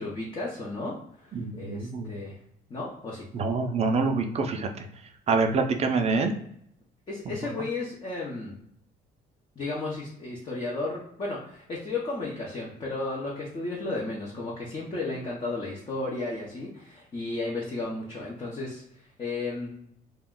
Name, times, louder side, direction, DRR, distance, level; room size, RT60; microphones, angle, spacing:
voice 1, 0.0-2.4 2.7-3.3 7.1-8.6 9.6-19.8, left 2 dB, 30° left, -5 dB, 0.7 m, -34 dB
voice 2, 1.3-2.1 3.3-4.9 5.3-6.3, right 4 dB, 40° right, 5 dB, 0.4 m, -26 dB
2.4 x 2.1 x 3.5 m, 0.71 s
cardioid pair, 110°, 17 cm